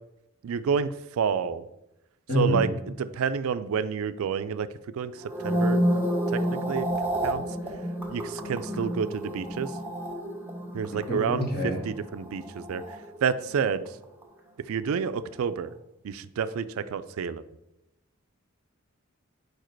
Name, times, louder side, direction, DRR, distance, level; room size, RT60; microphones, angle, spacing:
voice 1, 0.4-1.6 2.3-4.7 4.9-5.8 6.3-6.4 6.7-6.9 7.2-7.4 8.1-9.7 10.7-12.8 13.2-13.8 14.7-15.7 16.0-17.4, right 6 dB, 75° right, 13 dB, 0.4 m, -29 dB
voice 2, 2.3-2.7 11.1-11.8, left 1 dB, 50° left, -2 dB, 1.8 m, -26 dB
sound 1, 5.2-13.6 13.9-14.2, equal, 10° right, 0.9 m, -30 dB
4.8 x 4.8 x 4.5 m, 0.86 s
head